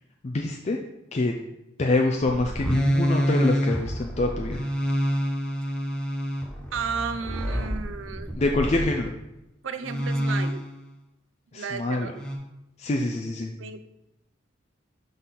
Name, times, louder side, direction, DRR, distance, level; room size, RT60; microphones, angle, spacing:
voice 1, 0.2-0.8 1.1-1.3 1.8-4.6 8.4-9.1 11.5-12.1 12.8-13.5, left 2 dB, 35° left, 2 dB, 0.4 m, -25 dB
sound 1, 2.2-9.1 9.8-10.8 12.2-12.4, equal, 5° left, 0.8 m, -27 dB
voice 2, 6.7-8.3 9.6-10.7 11.5-12.2 13.6-13.8, right 5 dB, 70° right, 10 dB, 0.5 m, -33 dB
7.4 x 3.9 x 4.0 m, 0.90 s
head